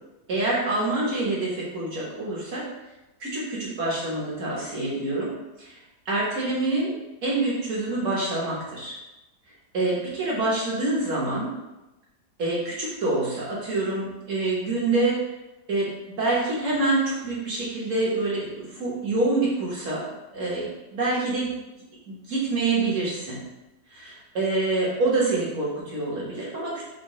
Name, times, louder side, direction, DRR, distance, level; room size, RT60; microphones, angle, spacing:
voice 1, 0.3-2.7 3.2-5.3 5.6-5.8 6.1-6.9 7.2-8.9 9.7-11.5 12.4-15.2 15.7-15.9 16.2-20.0 20.3-21.5 22.1-23.4 23.9-26.8, right 2 dB, 50° right, -5 dB, 1.3 m, -26 dB
5.5 x 2.2 x 3.0 m, 0.99 s
omnidirectional pair, 1.9 m